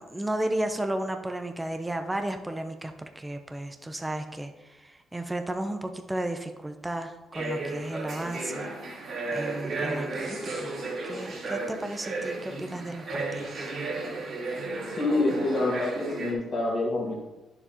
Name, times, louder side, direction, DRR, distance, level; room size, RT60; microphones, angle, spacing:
voice 1, 0.0-9.0 9.3-13.7, right 1 dB, 15° right, 6 dB, 0.6 m, -34 dB
sound 1, 7.3-16.3, right 2 dB, 65° right, 2.6 m, -33 dB
voice 2, 14.9-17.2, left 2 dB, 50° left, -6 dB, 1.8 m, -27 dB
9.8 x 6.9 x 2.9 m, 1.1 s
cardioid pair, 90°, 0 cm